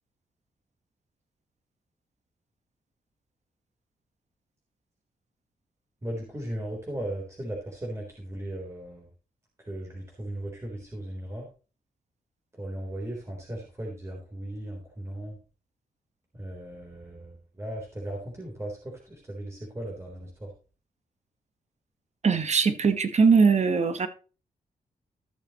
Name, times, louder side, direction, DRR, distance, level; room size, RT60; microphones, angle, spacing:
voice 1, 6.0-9.1 9.7-11.5 12.6-15.4 16.3-20.5, right 1 dB, 20° right, -1 dB, 3.7 m, -37 dB
voice 2, 22.2-24.1, right 5 dB, 50° right, 9 dB, 1.4 m, -21 dB
15.0 x 6.9 x 3.0 m, 0.35 s
cardioid pair, 90°, 15 cm